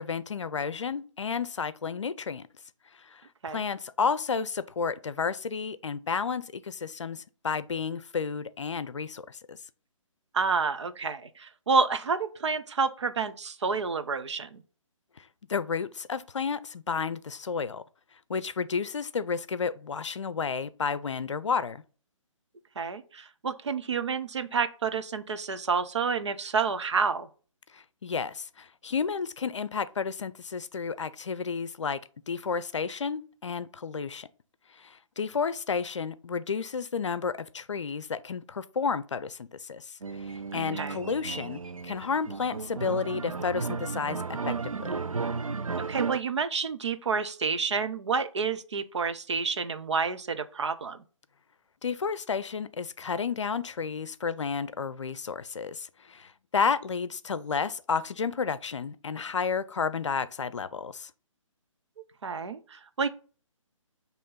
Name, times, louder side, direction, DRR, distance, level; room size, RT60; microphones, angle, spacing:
voice 1, 0.0-2.5 3.0-9.6 15.2-17.8 18.3-21.8 27.7-32.0 32.3-34.3 34.7-45.0 51.8-61.1, left 5 dB, 60° left, 0.6 m, -32 dB
voice 2, 10.3-14.6 22.8-27.3 40.5-41.0 45.9-51.0 62.2-63.1, right 5 dB, 60° right, 0.8 m, -29 dB
sound 1, 40.0-46.2, right 4 dB, 90° right, 0.4 m, -34 dB
8.4 x 3.1 x 5.5 m
figure-of-eight pair, 135°, 17 cm